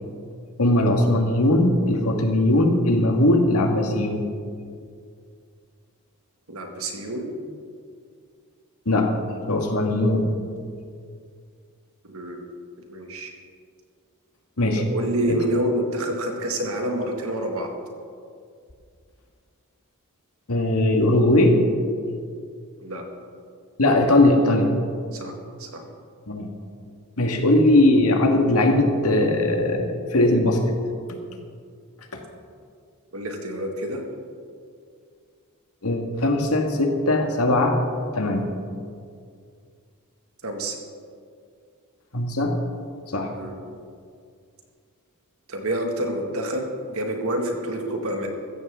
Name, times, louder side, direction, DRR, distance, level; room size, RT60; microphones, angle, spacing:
voice 1, 0.6-4.2 8.9-9.1 9.5-10.3 14.6-14.8 15.3-15.4 20.5-21.6 23.8-24.8 26.3-26.5 27.2-30.6 32.1-32.2 35.8-37.8 38.1-38.5 42.1-42.5 43.1-43.3, left 1 dB, 75° left, 3 dB, 1.8 m, -19 dB
voice 2, 6.5-7.3 12.0-12.4 12.9-13.3 14.7-17.7 22.8-23.0 25.1-25.3 25.6-25.8 33.1-34.0 40.4-40.8 43.3-43.5 45.5-48.3, right 1 dB, 70° right, 3 dB, 2.0 m, -28 dB
15.0 x 14.5 x 3.7 m, 2.2 s
head